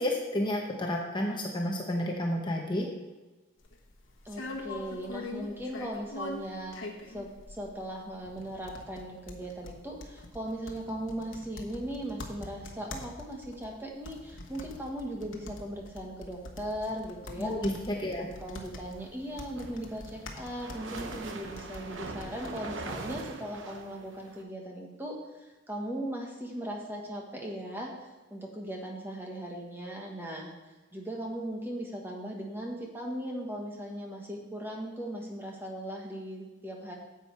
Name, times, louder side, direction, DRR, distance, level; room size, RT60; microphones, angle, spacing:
voice 1, 0.0-2.9 17.4-18.3, left 1 dB, 20° left, 0 dB, 0.9 m, -31 dB
sound 1, 3.6-22.6, left 2 dB, 70° left, 1.2 m, -44 dB
voice 2, 4.2-6.8 7.1-17.5 17.9-30.5 30.9-36.9, right 1 dB, 10° right, 0 dB, 1.3 m, -38 dB
sound 2, 19.3-24.4, right 3 dB, 65° right, 1.0 m, -42 dB
9.8 x 7.4 x 4.6 m, 1.2 s
head